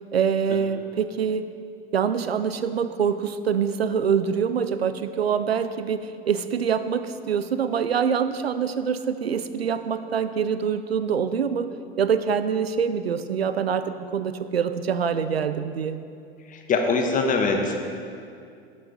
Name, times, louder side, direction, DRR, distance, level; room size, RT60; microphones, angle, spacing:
voice 1, 0.1-1.5 1.9-11.7 12.0-16.0, right 7 dB, 85° right, 12 dB, 0.5 m, -25 dB
voice 2, 16.5-17.7, left 4 dB, 25° left, 3 dB, 1.0 m, -23 dB
11.5 x 7.3 x 3.5 m, 2.4 s
figure-of-eight pair, 80°, 30 cm